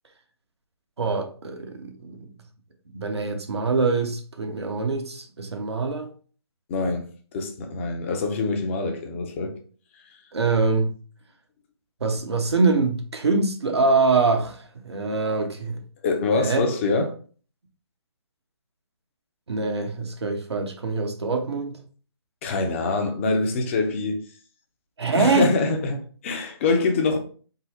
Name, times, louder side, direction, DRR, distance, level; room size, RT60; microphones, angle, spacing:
voice 1, 1.0-2.3 2.9-6.1 10.3-10.9 12.0-15.8 16.3-16.7 19.5-21.7 25.0-25.5, right 4 dB, 75° right, 0.9 m, -24 dB
voice 2, 6.7-9.6 16.0-17.1 22.4-24.2 25.1-27.2, left 3 dB, 30° left, 0.6 m, -24 dB
3.8 x 2.0 x 4.2 m
figure-of-eight pair, 140°, 14 cm